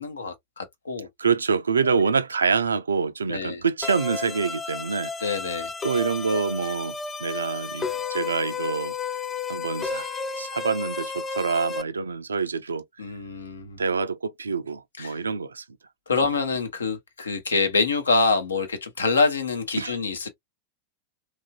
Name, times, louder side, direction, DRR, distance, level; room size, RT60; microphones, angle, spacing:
voice 1, 0.0-1.1 1.8-2.0 3.3-3.6 5.2-5.7 13.0-13.8 15.0-15.1 16.1-20.3, left 4 dB, 70° left, 0.7 m, -26 dB
voice 2, 1.2-5.1 5.8-8.9 9.5-12.8 13.8-15.6 19.8-20.0, right 5 dB, 75° right, 0.3 m, -26 dB
sound 1, 3.8-11.8, left 4 dB, 20° left, 0.4 m, -32 dB
3.0 x 2.4 x 2.3 m
figure-of-eight pair, 90°, 0 cm